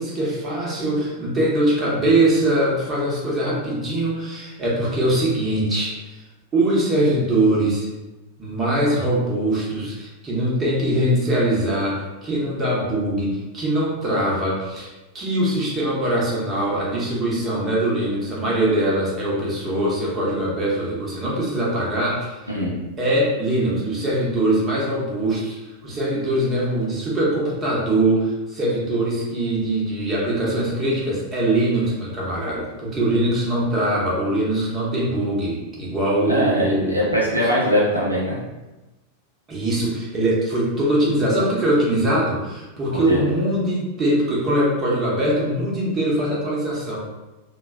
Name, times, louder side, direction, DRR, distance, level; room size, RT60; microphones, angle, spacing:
voice 1, 0.0-6.2 6.5-7.9 8.4-14.9 15.1-22.4 23.0-25.6 25.8-37.0 39.5-47.0, right 1 dB, 25° right, -5 dB, 0.9 m, -22 dB
voice 2, 36.3-38.4 42.9-43.2, equal, 85° right, -5 dB, 0.6 m, -21 dB
3.1 x 2.3 x 2.3 m, 1.1 s
figure-of-eight pair, 90°, 0 cm